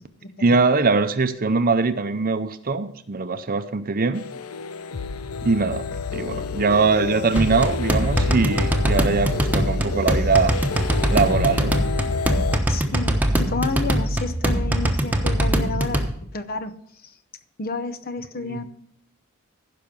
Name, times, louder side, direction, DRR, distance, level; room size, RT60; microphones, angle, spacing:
voice 1, 0.4-4.3 5.4-5.9 6.1-10.5 11.1-11.8 18.5-18.6, right 4 dB, 40° right, 0.7 m, -22 dB
sound 1, 4.1-12.6, left 5 dB, 90° left, 0.6 m, -29 dB
sound 2, 7.4-16.1, right 1 dB, 10° right, 1.1 m, -22 dB
voice 2, 12.7-16.0 16.3-16.7 17.6-18.6, left 3 dB, 45° left, 0.8 m, -30 dB
15.5 x 5.9 x 5.3 m
head